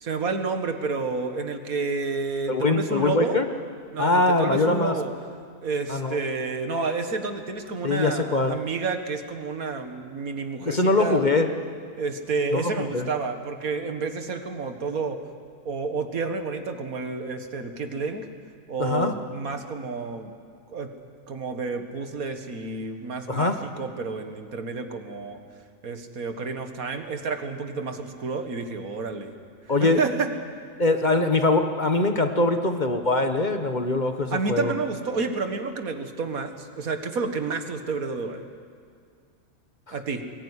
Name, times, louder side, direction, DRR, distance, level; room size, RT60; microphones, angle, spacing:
voice 1, 0.0-3.4 3.9-5.1 5.6-11.2 12.0-15.2 15.7-18.3 18.7-20.3 20.7-20.9 21.3-25.4 25.8-29.3 29.8-30.3 34.3-38.4 39.9-40.2, right 4 dB, 85° right, 7 dB, 2.1 m, -30 dB
voice 2, 2.5-3.5 4.0-4.9 5.9-6.2 7.8-8.5 10.6-11.5 12.5-13.1 18.8-19.1 23.3-23.6 29.7-30.0 30.8-34.7, left 2 dB, 35° left, 6 dB, 1.3 m, -22 dB
21.5 x 19.5 x 9.9 m, 2.2 s
omnidirectional pair, 1.5 m